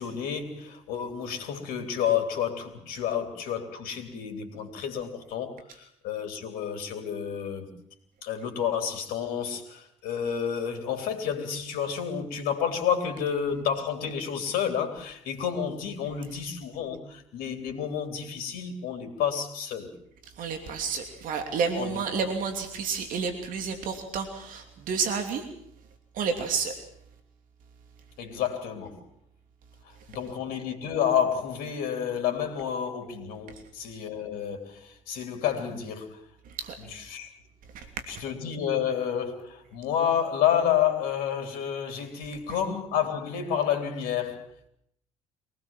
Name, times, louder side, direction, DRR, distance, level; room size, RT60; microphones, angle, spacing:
voice 1, 0.0-7.7 8.2-19.9 21.7-22.0 28.2-29.0 29.8-36.2 36.9-37.3 38.1-44.5, left 8 dB, 65° left, 3.4 m, -30 dB
voice 2, 20.3-25.5 26.1-26.8 33.5-33.6 36.4-37.1 37.7-37.8, right 5 dB, 60° right, 2.9 m, -31 dB
24.5 x 18.5 x 7.5 m
hypercardioid pair, 60°, 16 cm